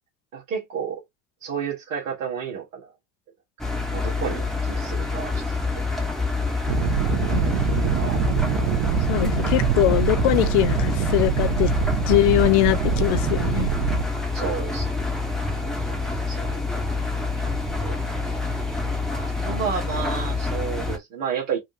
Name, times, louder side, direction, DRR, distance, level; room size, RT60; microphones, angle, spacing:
voice 1, 0.3-1.0 1.4-2.9 3.9-5.6 5.9-6.2 7.0-7.2 8.0-8.2 14.3-15.0 15.6-16.0 16.3-16.9 17.8-18.0 18.2-18.4 19.1-21.6, right 7 dB, 80° right, 1.4 m, -32 dB
Engine, 3.6-21.0, left 3 dB, ahead, 1.0 m, -27 dB
sound 1, 6.7-14.1, right 9 dB, 50° right, 1.0 m, -24 dB
voice 2, 9.1-11.7 12.1-13.7, left 15 dB, 65° left, 0.6 m, -21 dB
4.1 x 2.5 x 2.6 m
hypercardioid pair, 65°, 37 cm